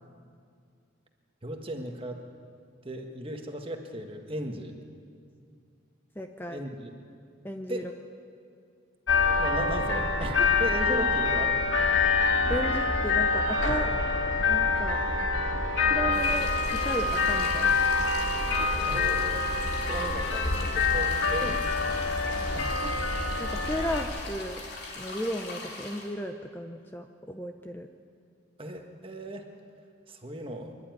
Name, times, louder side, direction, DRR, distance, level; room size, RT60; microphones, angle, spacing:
voice 1, 1.4-2.2 2.8-4.7 6.5-6.9 7.7-7.9 9.4-11.6 18.8-19.5 19.8-21.7 22.2-23.0 28.6-29.5 30.1-30.7, right 1 dB, 25° right, 4 dB, 1.6 m, -37 dB
voice 2, 6.2-6.6 7.4-7.9 10.9-11.1 12.5-13.9 14.5-15.0 15.9-16.5 16.8-17.9 21.4-21.6 23.4-24.6 25.0-27.9, equal, 10° left, 5 dB, 0.7 m, -34 dB
sound 1, 9.1-24.0, left 4 dB, 70° left, 2.1 m, -26 dB
sound 2, 16.1-26.1, left 2 dB, 50° left, 3.4 m, -41 dB
26.5 x 11.5 x 9.5 m, 2.3 s
head